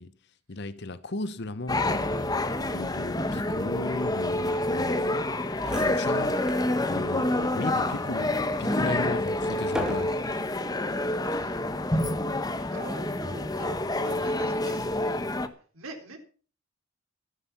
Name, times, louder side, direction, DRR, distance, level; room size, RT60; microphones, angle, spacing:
voice 1, 0.0-5.4 5.7-10.2, left 2 dB, 55° left, 0.8 m, -36 dB
sound 1, 1.7-15.5, left 1 dB, 20° left, 1.0 m, -28 dB
sound 2, 5.5-6.7 7.1-7.3 7.9-10.5 11.3-11.6, equal, 5° right, 3.1 m, -37 dB
voice 2, 5.6-6.2 7.4-9.3 10.0-10.8 11.1-11.8 12.7-13.8 14.0-14.9 15.4-16.2, right 2 dB, 85° right, 3.8 m, -46 dB
14.0 x 11.5 x 5.9 m
head